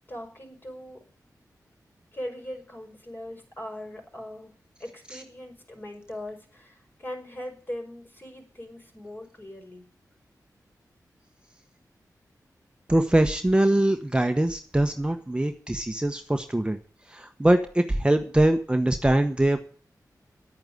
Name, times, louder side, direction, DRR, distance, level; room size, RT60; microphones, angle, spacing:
voice 1, 0.1-1.0 2.1-4.5 4.8-9.9, left 1 dB, 30° left, 3 dB, 5.6 m, -40 dB
voice 2, 12.9-16.8 17.1-19.6, right 1 dB, 15° right, 6 dB, 1.1 m, -23 dB
11.0 x 8.9 x 9.8 m, 0.43 s
wide cardioid pair, 70°, 7 cm